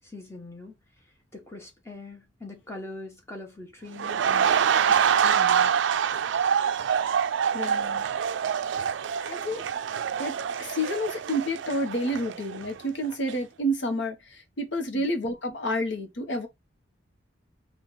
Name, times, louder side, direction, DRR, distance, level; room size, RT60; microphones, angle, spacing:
voice 1, 0.1-0.7 1.3-4.6 4.9-5.7 14.9-15.1, left 2 dB, 15° left, 1.1 m, -42 dB
sound 1, 4.0-12.8 13.1-13.3, right 7 dB, 70° right, 0.3 m, -25 dB
voice 2, 7.5-8.1 9.2-9.6 10.2-16.5, equal, 70° left, 0.9 m, -30 dB
3.1 x 2.4 x 3.9 m
head